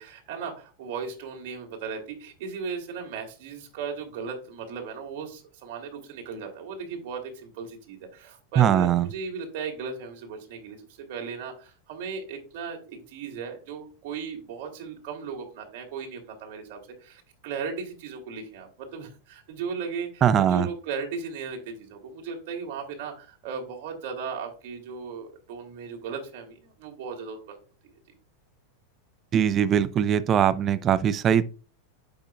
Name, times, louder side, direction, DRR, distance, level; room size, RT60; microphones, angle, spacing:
voice 1, 0.0-27.6, right 5 dB, 55° right, 2.8 m, -36 dB
voice 2, 8.6-9.1 20.2-20.7 29.3-31.4, right 9 dB, 35° right, 0.6 m, -21 dB
9.0 x 7.0 x 2.4 m
hypercardioid pair, 90°, 0 cm